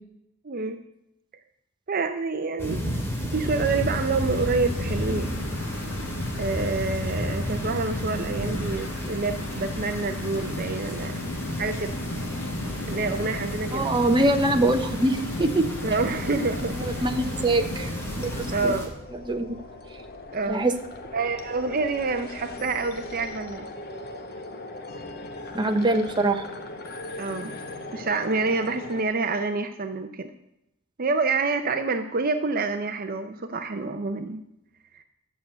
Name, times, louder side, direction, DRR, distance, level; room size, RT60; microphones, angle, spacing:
voice 1, 0.4-0.8 1.9-2.8 3.3-5.4 6.4-11.2 11.6-11.9 12.9-13.9 15.8-17.1 18.5-18.9 20.3-20.6 21.1-23.7 27.2-27.5 27.9-30.3 31.0-34.4 34.9-35.0, right 3 dB, 45° right, 7 dB, 0.6 m, -27 dB
sound 1, 2.6-18.9, equal, 10° left, 2.6 m, -34 dB
sound 2, 3.4-18.8, left 1 dB, 75° left, 2.0 m, -34 dB
voice 2, 13.7-15.7 16.8-17.9 18.2-18.7 19.3-19.6 20.5-20.7 25.5-26.4, right 2 dB, 20° right, 5 dB, 0.9 m, -23 dB
sound 3, 14.1-29.0, left 2 dB, 50° left, 1.2 m, -40 dB
11.5 x 6.9 x 7.9 m, 0.85 s
head